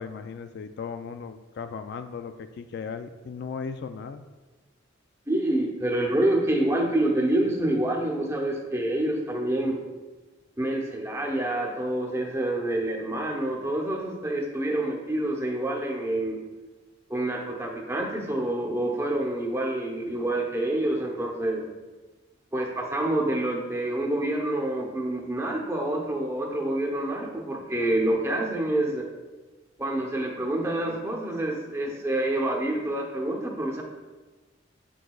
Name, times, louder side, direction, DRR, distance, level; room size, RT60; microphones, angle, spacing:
voice 1, 0.0-4.2, left 5 dB, 60° left, 9 dB, 0.3 m, -37 dB
voice 2, 5.3-9.8 10.6-16.4 17.1-21.7 22.5-29.1 29.8-33.8, right 1 dB, 15° right, 0 dB, 0.8 m, -27 dB
7.8 x 6.1 x 2.3 m, 1.2 s
head